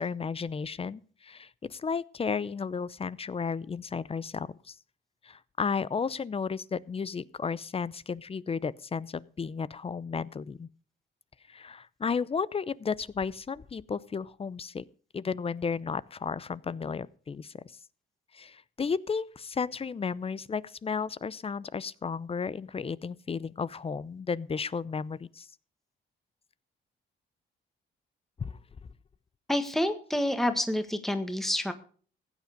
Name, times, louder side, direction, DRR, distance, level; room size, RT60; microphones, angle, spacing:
voice 1, 0.0-4.8 5.2-10.7 11.5-14.8 15.1-17.6 18.3-25.5 28.4-28.6, left 5 dB, 30° left, 0.7 m, -33 dB
voice 2, 29.5-31.7, left 1 dB, ahead, 1.6 m, -28 dB
15.5 x 9.3 x 5.1 m
cardioid pair, 90°, 20 cm